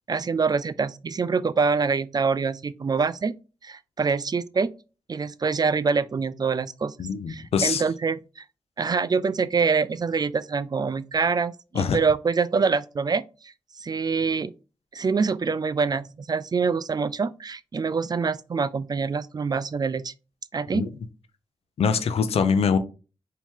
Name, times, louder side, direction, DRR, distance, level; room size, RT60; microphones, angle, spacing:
voice 1, 0.1-3.4 3.6-4.7 5.1-6.9 7.3-8.4 8.8-13.2 13.8-14.5 14.9-20.1 20.5-20.8, right 5 dB, 40° right, 0.4 m, -25 dB
voice 2, 7.0-7.8 11.7-12.0 20.7-20.9 21.8-22.8, left 6 dB, 75° left, 0.6 m, -23 dB
4.4 x 3.0 x 3.6 m
cardioid pair, 45°, 10 cm